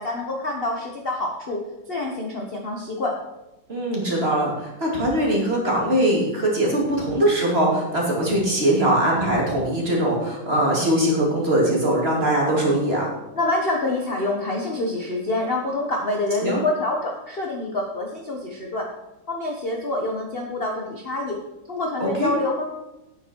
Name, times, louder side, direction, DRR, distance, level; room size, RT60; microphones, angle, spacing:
voice 1, 0.0-1.6 1.9-3.2 13.3-18.9 19.3-21.4 21.7-22.8, left 2 dB, 35° left, 0 dB, 1.1 m, -26 dB
voice 2, 3.7-13.1 16.4-16.7 22.0-22.3, right 1 dB, 30° right, -3 dB, 2.9 m, -21 dB
9.9 x 8.8 x 4.6 m, 0.94 s
omnidirectional pair, 2.3 m